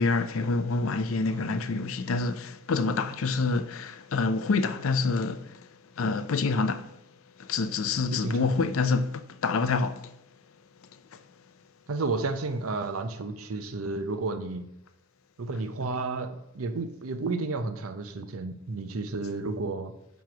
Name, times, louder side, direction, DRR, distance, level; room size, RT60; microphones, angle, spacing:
voice 1, 0.0-5.6 6.0-6.9 7.4-10.1, left 4 dB, 70° left, 0.5 m, -27 dB
voice 2, 8.1-8.5 11.9-14.7 15.4-19.9, right 3 dB, 80° right, 0.7 m, -32 dB
9.2 x 3.1 x 5.9 m
head